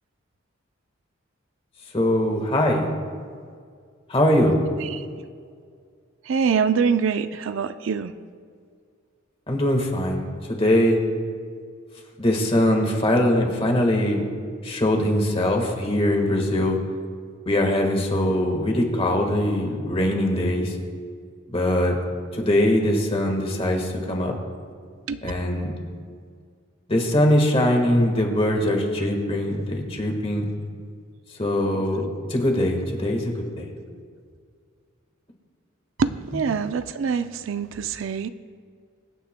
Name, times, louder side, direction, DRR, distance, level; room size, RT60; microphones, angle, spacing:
voice 1, 1.9-2.9 4.1-4.6 9.5-11.0 12.2-14.2 14.6-16.8 17.5-20.8 21.5-22.0 22.3-24.3 25.2-25.7 26.9-30.5 31.4-33.7 36.3-36.5, left 1 dB, 30° left, 2 dB, 1.5 m, -22 dB
voice 2, 6.3-8.1 25.1-25.3 36.0-38.3, right 6 dB, 70° right, 11 dB, 0.4 m, -24 dB
23.5 x 9.2 x 2.2 m, 2.1 s
head